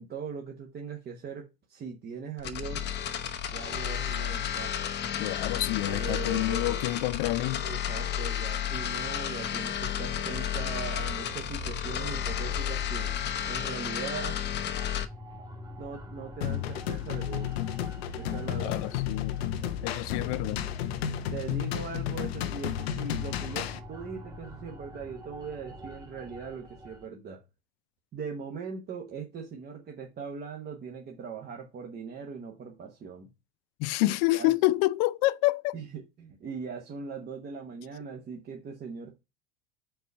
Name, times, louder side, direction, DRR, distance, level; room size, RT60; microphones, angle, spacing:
voice 1, 0.0-2.9 3.5-4.8 5.9-6.8 7.6-13.1 13.5-14.4 15.8-17.6 18.1-19.0 21.3-27.4 28.1-33.3 34.0-34.5 35.7-39.1, right 5 dB, 30° right, 1.1 m, -40 dB
sound 1, 2.4-15.1, left 10 dB, 35° left, 0.8 m, -32 dB
voice 2, 5.2-7.6 18.6-19.4 19.8-20.6 33.8-35.8, left 19 dB, 55° left, 0.4 m, -28 dB
sound 2, 10.1-27.1, right 2 dB, 15° right, 1.4 m, -46 dB
sound 3, 16.4-23.8, left 11 dB, 80° left, 0.8 m, -32 dB
4.6 x 4.0 x 5.4 m
hypercardioid pair, 95°, 30 cm